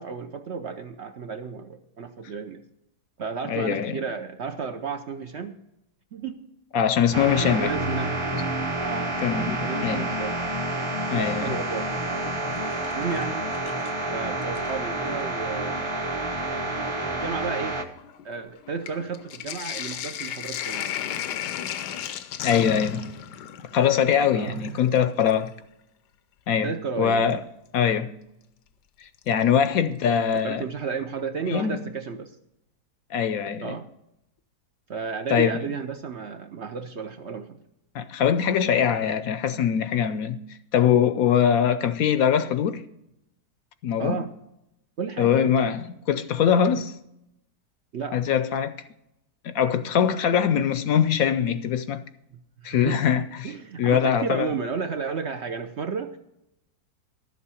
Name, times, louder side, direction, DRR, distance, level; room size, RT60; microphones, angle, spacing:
voice 1, 0.0-2.6 3.2-5.6 6.1-6.4 6.7-6.9 7.4-8.2 8.8-10.4 11.1-12.1 13.0-13.5 14.1-15.9 17.0-17.8 18.2-20.9 24.3-24.8 26.6-27.4 29.7-29.8 30.3-32.3 33.6-33.9 34.9-37.5 44.0-44.3 45.0-45.5 47.9-48.2 52.3-53.0 53.4-56.2, right 5 dB, 55° right, 0.8 m, -33 dB
voice 2, 3.5-4.0 6.7-7.7 8.3-8.4 9.2-10.1 11.1-11.6 22.4-23.1 23.7-25.5 26.5-27.4 27.7-28.1 29.0-30.6 31.5-31.8 33.1-33.8 35.3-35.6 37.9-40.4 40.7-42.8 43.8-44.3 45.2-46.9 48.1-48.7 49.4-52.0 52.6-53.5 53.8-54.5, left 8 dB, 70° left, 1.0 m, -22 dB
sound 1, 7.1-17.8, right 1 dB, 20° right, 0.9 m, -29 dB
Sink (filling or washing), 12.1-14.1 14.4-15.2 16.0-16.1 16.4-25.5 27.3-27.4 29.2-29.7 30.0-30.1 30.3-30.4, left 10 dB, 85° left, 1.3 m, -36 dB
12.0 x 7.4 x 5.6 m
omnidirectional pair, 1.7 m